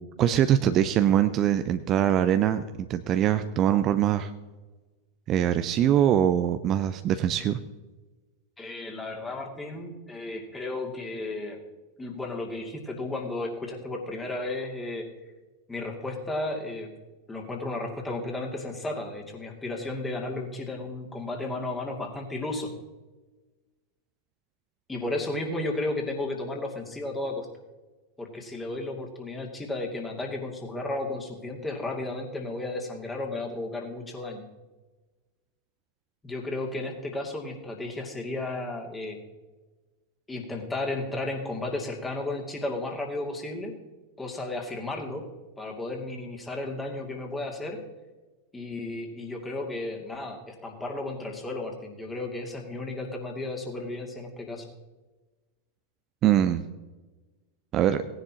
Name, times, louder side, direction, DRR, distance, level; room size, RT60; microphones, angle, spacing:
voice 1, 0.2-2.6 2.9-4.3 5.3-7.6 56.2-56.6 57.7-58.0, right 10 dB, 35° right, 10 dB, 0.5 m, -23 dB
voice 2, 8.6-11.6 12.0-15.1 15.7-16.9 17.3-22.7 24.9-27.5 28.2-34.4 36.2-39.2 40.3-43.7 44.2-45.2 45.6-47.8 48.5-54.7, left 2 dB, 10° left, 1 dB, 2.5 m, -33 dB
18.0 x 10.5 x 2.9 m, 1.2 s
figure-of-eight pair, 90°, 0 cm